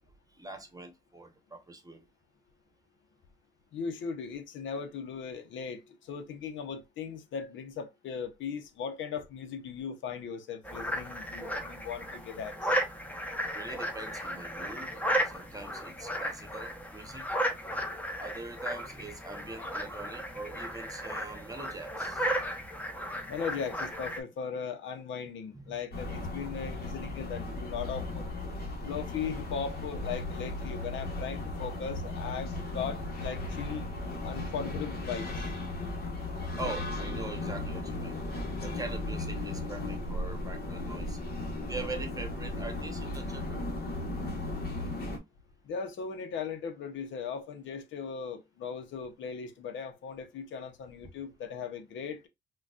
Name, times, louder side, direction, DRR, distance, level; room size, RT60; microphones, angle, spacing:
voice 1, 0.3-2.1 13.5-17.3 17.7-17.9 18.2-22.5 25.5-25.8 36.6-38.2 38.6-41.2 41.7-43.6, right 2 dB, 15° right, 0.9 m, -43 dB
voice 2, 3.7-12.8 23.3-28.2 28.8-33.9 34.2-35.5 45.6-52.3, left 6 dB, 70° left, 0.7 m, -38 dB
sound 1, 10.6-24.2, equal, 10° left, 0.8 m, -35 dB
sound 2, 25.9-45.2, left 2 dB, 50° left, 1.1 m, -36 dB
3.8 x 2.3 x 2.3 m
cardioid pair, 90°, 20 cm